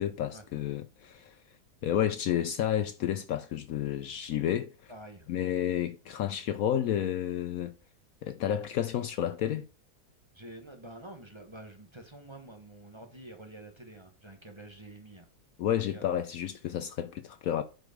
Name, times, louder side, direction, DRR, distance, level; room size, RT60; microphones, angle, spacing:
voice 1, 0.0-1.4 1.8-4.9 5.3-7.7 8.2-9.7 15.6-17.6, left 10 dB, 70° left, 0.9 m, -31 dB
voice 2, 4.9-5.3 10.3-15.2 15.9-16.0, right 1 dB, 20° right, 1.2 m, -48 dB
8.0 x 5.0 x 5.0 m
omnidirectional pair, 1.7 m